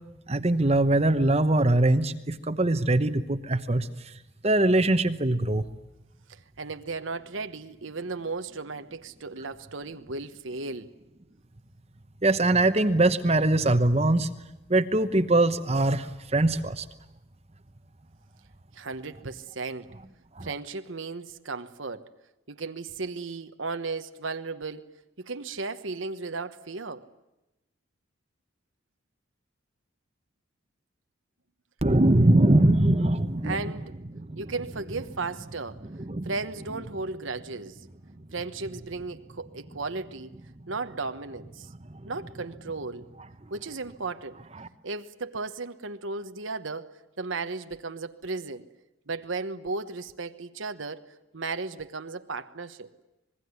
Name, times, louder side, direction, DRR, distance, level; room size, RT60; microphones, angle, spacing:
voice 1, 0.3-3.9 4.4-5.6 12.2-14.3 14.7-16.8 20.4-20.5 31.8-33.6 34.1-34.4 35.9-36.3 44.6-44.7, right 2 dB, 30° right, 9 dB, 1.0 m, -22 dB
voice 2, 6.3-10.9 18.7-19.9 20.4-22.1 22.5-24.8 25.2-27.0 33.4-33.9 34.4-35.8 36.2-37.8 38.3-40.3 40.7-41.7 42.1-43.1 43.5-44.4 44.8-46.9 47.2-48.7 49.1-52.9, right 3 dB, 80° right, 8 dB, 1.2 m, -35 dB
26.0 x 21.0 x 9.6 m, 0.97 s
head